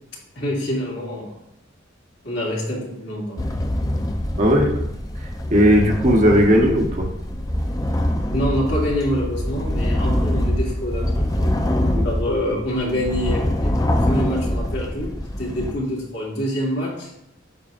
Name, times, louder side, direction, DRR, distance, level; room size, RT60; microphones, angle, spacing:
voice 1, 0.3-1.3 2.2-3.5 8.3-11.5 12.0-17.1, equal, 65° left, -5 dB, 2.5 m, -26 dB
sound 1, 3.4-15.7, left 1 dB, 20° left, 0.6 m, -24 dB
voice 2, 4.4-4.7 5.5-7.1 11.9-12.0, equal, 40° right, 1 dB, 1.1 m, -16 dB
9.3 x 7.0 x 2.5 m, 0.82 s
head